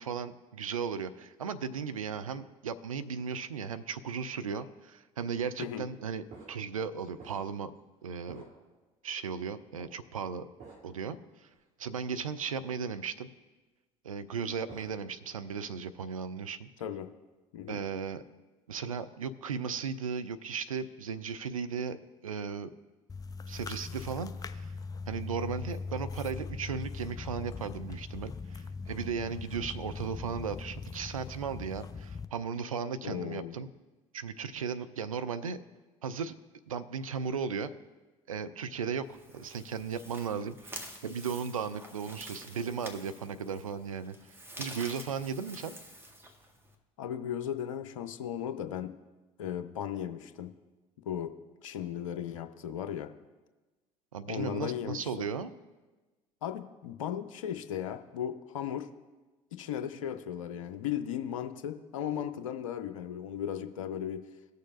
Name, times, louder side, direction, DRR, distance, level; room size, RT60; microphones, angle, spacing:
voice 1, 0.0-7.7 8.0-8.5 9.0-10.5 10.8-11.2 11.8-13.3 14.0-16.7 17.7-18.2 18.7-22.0 22.2-22.7 23.5-24.7 25.1-33.7 34.1-35.6 36.0-36.4 36.7-37.7 38.3-39.1 39.3-44.2 44.6-45.8 54.1-55.5, right 6 dB, 85° right, 11 dB, 0.4 m, -36 dB
sound 1, 6.3-7.8 8.2-8.9 9.8-9.9 10.6-11.1 11.5-11.6 14.3-15.2 15.6-16.0, right 4 dB, 45° right, 2.2 m, -52 dB
sound 2, 23.1-32.3, left 4 dB, 20° left, 0.5 m, -40 dB
voice 2, 33.0-33.6 47.0-48.9 49.4-50.5 51.1-51.3 51.6-53.1 54.3-55.3 56.4-58.9 59.5-64.3, left 9 dB, 75° left, 8 dB, 0.6 m, -36 dB
sound 3, 39.0-46.8, right 1 dB, 15° right, 1.4 m, -48 dB
18.5 x 6.5 x 2.4 m, 1.2 s
figure-of-eight pair, 60°, 17 cm